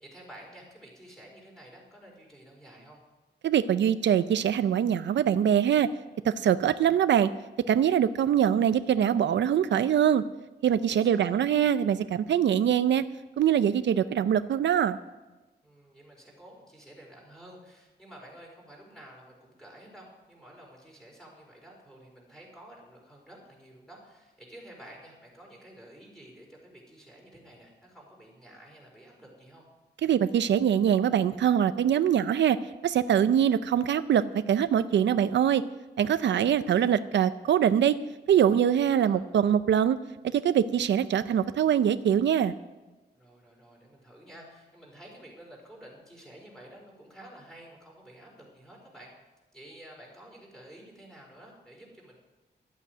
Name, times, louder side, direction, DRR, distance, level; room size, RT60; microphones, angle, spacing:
voice 1, 0.0-3.0 10.9-11.4 15.6-29.7 38.7-39.2 43.1-49.1 49.5-52.2, right 1 dB, 5° left, -3 dB, 4.7 m, -51 dB
voice 2, 3.4-5.9 6.2-7.3 7.7-10.2 10.6-13.0 13.4-15.0 30.0-35.6 36.0-38.0 38.3-40.0 40.2-42.5, right 9 dB, 85° right, 13 dB, 0.5 m, -23 dB
12.5 x 8.3 x 9.2 m, 1.1 s
wide cardioid pair, 155°, 18 cm